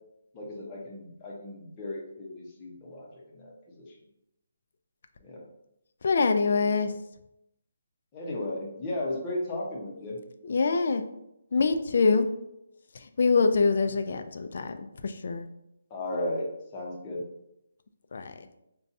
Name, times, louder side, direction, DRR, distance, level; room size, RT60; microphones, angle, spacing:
voice 1, 0.3-3.1 3.3-3.9 5.2-5.4 8.1-10.2 15.9-17.2, left 1 dB, 15° left, -3 dB, 0.7 m, -35 dB
voice 2, 6.0-6.9 10.4-11.0 11.5-12.3 12.9-15.5 18.1-18.3, left 4 dB, 50° left, 8 dB, 0.3 m, -25 dB
5.2 x 2.2 x 2.6 m, 0.83 s
hypercardioid pair, 170°, 0 cm